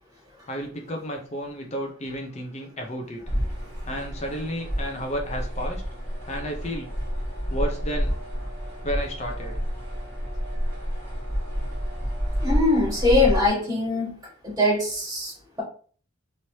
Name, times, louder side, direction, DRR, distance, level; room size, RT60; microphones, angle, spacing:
voice 1, 0.5-3.2 3.9-5.8 6.3-6.9 7.5-8.1 8.8-9.6, equal, 30° left, 2 dB, 0.5 m, -32 dB
sound 1, 3.2-13.5, equal, 10° left, 1.2 m, -29 dB
voice 2, 12.4-14.1 14.4-15.3, left 2 dB, 15° right, -4 dB, 1.4 m, -22 dB
3.1 x 3.0 x 2.7 m, 0.44 s
head